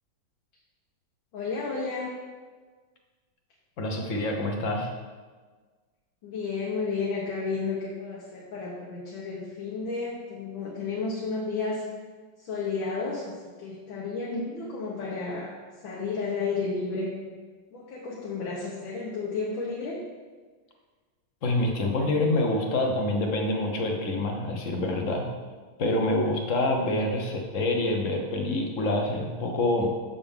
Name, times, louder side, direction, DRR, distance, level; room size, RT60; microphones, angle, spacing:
voice 1, 1.3-2.2 6.2-11.8 12.4-17.1 17.7-20.0, left 4 dB, 85° left, -4 dB, 1.8 m, -32 dB
voice 2, 3.8-4.9 21.4-25.3 25.8-29.9, left 2 dB, 50° left, 2 dB, 1.1 m, -26 dB
7.3 x 6.9 x 3.6 m, 1.4 s
omnidirectional pair, 2.1 m